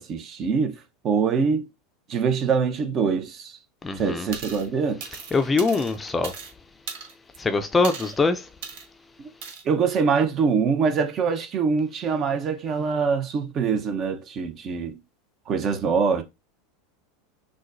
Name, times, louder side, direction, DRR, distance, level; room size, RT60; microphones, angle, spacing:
voice 1, 0.0-1.7 2.1-3.6 3.9-5.0 9.2-9.3 9.6-15.0 15.5-16.2, right 5 dB, 40° right, 0.8 m, -24 dB
voice 2, 3.8-4.3 5.3-6.3 7.4-8.5, left 3 dB, 20° left, 0.5 m, -23 dB
sound 1, 4.3-4.7 5.0-6.5 6.9-7.4 7.8-8.2 8.6-8.9 9.4-9.6, right 5 dB, 65° right, 1.0 m, -37 dB
6.2 x 2.3 x 2.6 m
hypercardioid pair, 100°, 0 cm